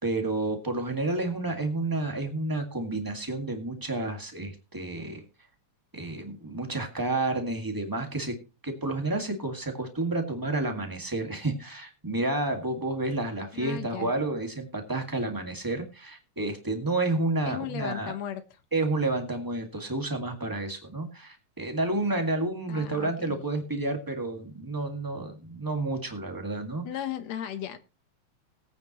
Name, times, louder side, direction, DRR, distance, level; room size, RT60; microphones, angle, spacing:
voice 1, 0.0-5.2 5.9-8.4 8.6-18.2 18.7-26.9, right 2 dB, 10° right, 4 dB, 1.2 m, -30 dB
voice 2, 13.5-14.1 17.5-18.4 22.7-23.4 26.8-27.8, left 10 dB, 70° left, 11 dB, 2.1 m, -36 dB
19.0 x 9.0 x 3.0 m, 0.31 s
omnidirectional pair, 3.4 m